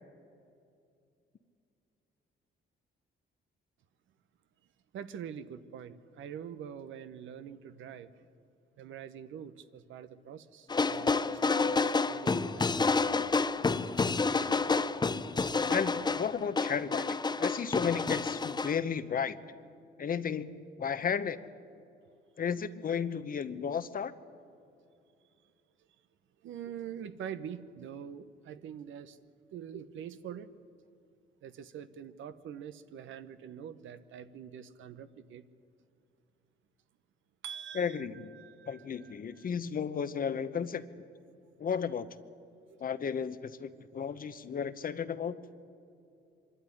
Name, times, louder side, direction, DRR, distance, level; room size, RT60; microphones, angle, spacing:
voice 1, 4.9-8.3 8.8-13.0 26.4-29.2 29.5-30.5 31.4-35.4 37.4-39.4, right 8 dB, 75° right, 12 dB, 1.0 m, -45 dB
sound 1, 10.7-18.8, left 4 dB, 20° left, 0.7 m, -29 dB
voice 2, 15.7-19.4 20.0-21.4 22.4-24.1 37.7-38.3 38.7-41.1 41.6-42.1 42.8-45.6, left 7 dB, 45° left, 13 dB, 1.0 m, -34 dB
24.5 x 12.5 x 10.0 m, 2.5 s
cardioid pair, 90°, 20 cm